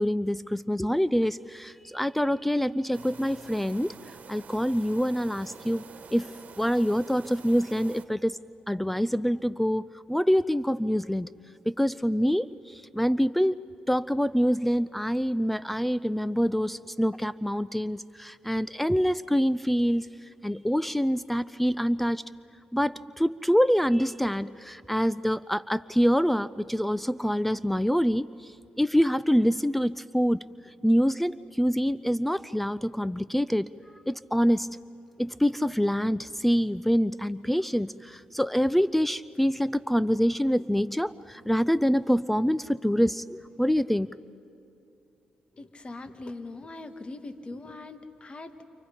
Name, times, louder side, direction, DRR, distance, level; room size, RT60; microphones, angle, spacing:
voice 1, 0.0-3.9 4.3-5.8 6.1-8.4 8.7-11.3 11.7-13.6 13.9-20.1 20.4-22.2 22.7-28.3 28.8-30.4 30.8-33.7 34.1-34.7 35.2-44.1, equal, 5° left, 18 dB, 0.5 m, -25 dB
sound 1, 2.9-8.0, right 6 dB, 55° right, 1.6 m, -47 dB
voice 2, 45.5-48.6, left 2 dB, 35° left, 8 dB, 1.9 m, -41 dB
29.5 x 28.5 x 5.3 m, 2.7 s
supercardioid pair, 55°, 3 cm